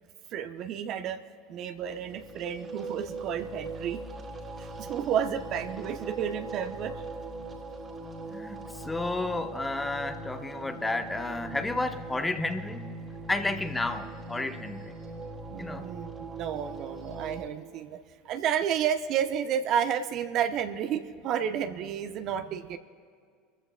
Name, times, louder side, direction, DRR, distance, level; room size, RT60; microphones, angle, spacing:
voice 1, 0.3-1.2 1.5-4.0 4.6-7.0 15.5-18.0 18.2-22.8, right 9 dB, 50° right, 8 dB, 0.8 m, -31 dB
sound 1, 1.8-17.5, right 2 dB, 25° right, 2.5 m, -40 dB
voice 2, 8.3-13.0 13.3-14.9 15.6-15.9, left 2 dB, 15° left, 8 dB, 0.9 m, -32 dB
25.0 x 14.5 x 2.3 m, 2.1 s
hypercardioid pair, 75°, 0 cm